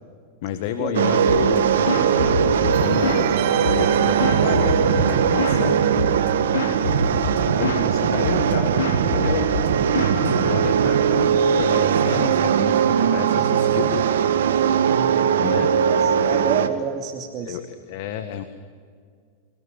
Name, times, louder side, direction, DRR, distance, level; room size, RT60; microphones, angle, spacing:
voice 1, 0.4-5.8 7.3-9.5 10.1-14.0 15.4-15.7 17.4-18.4, left 9 dB, 65° left, 10 dB, 1.7 m, -30 dB
sound 1, 0.9-16.7, right 8 dB, 80° right, 1.9 m, -20 dB
sound 2, 1.3-1.6 1.9-3.3 3.6-5.6 6.0-6.3 6.5-7.9 8.2-8.5 8.8-10.9, left 4 dB, 85° left, 2.9 m, -27 dB
sound 3, 2.7-8.2 8.5-8.6, right 13 dB, 60° right, 1.6 m, -32 dB
voice 2, 14.9-15.3 15.8-17.6, right 8 dB, 40° right, 2 dB, 2.6 m, -29 dB
27.0 x 19.0 x 10.0 m, 2.1 s
hypercardioid pair, 110°, 0 cm